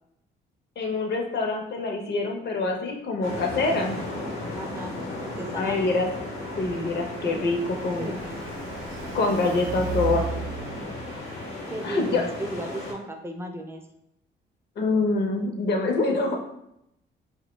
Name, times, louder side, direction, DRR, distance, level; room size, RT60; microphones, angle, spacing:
voice 1, 0.8-3.9 5.5-6.1 6.6-8.2 9.1-10.3 11.8-12.2 14.8-16.4, left 3 dB, 55° left, 3 dB, 0.5 m, -25 dB
sound 1, 3.2-12.9, left 2 dB, 85° left, 0.8 m, -35 dB
voice 2, 4.6-5.9 8.0-8.4 11.7-13.8, right 1 dB, 10° right, 4 dB, 0.3 m, -35 dB
Car passing by, 6.3-11.7, right 5 dB, 85° right, 0.5 m, -36 dB
2.5 x 2.1 x 3.0 m, 0.80 s
cardioid pair, 90°, 20 cm